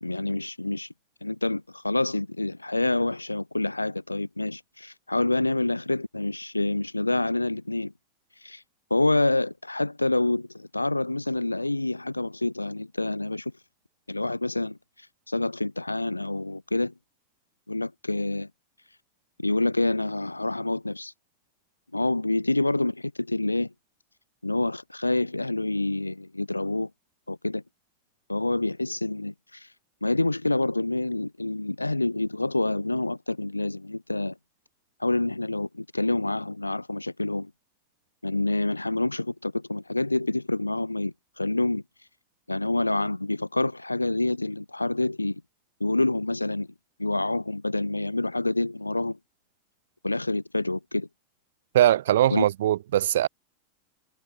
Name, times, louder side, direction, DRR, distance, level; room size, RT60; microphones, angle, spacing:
voice 1, 0.0-0.9 1.2-7.9 8.4-8.6 8.9-13.5 14.1-16.9 17.7-18.5 19.4-21.1 21.9-23.7 24.4-26.9 27.3-27.6 28.3-29.7 30.0-34.3 35.0-37.5 38.2-41.8 42.5-45.4 45.8-46.7 47.0-49.2 50.0-51.1 52.3-52.4, left 2 dB, 85° left, 0.9 m, -27 dB
voice 2, 51.7-53.3, right 12 dB, 60° right, 1.3 m, -21 dB
figure-of-eight pair, 90°, 0 cm